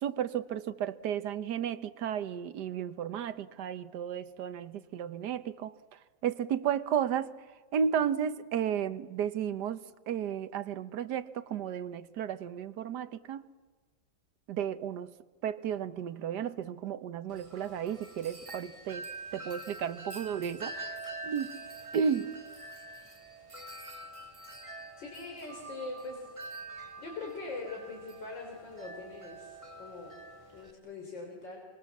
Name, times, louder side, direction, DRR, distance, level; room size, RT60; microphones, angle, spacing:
voice 1, 0.0-7.3 7.7-9.8 10.1-13.5 14.5-15.1 15.4-19.1 19.3-21.5 21.9-22.3, right 8 dB, 70° right, 1.5 m, -33 dB
Wind chime, 17.3-30.7, right 2 dB, 20° right, 1.6 m, -46 dB
voice 2, 25.0-26.3 27.0-30.2 30.5-31.6, left 3 dB, 90° left, 4.4 m, -42 dB
27.0 x 25.0 x 7.3 m
omnidirectional pair, 1.9 m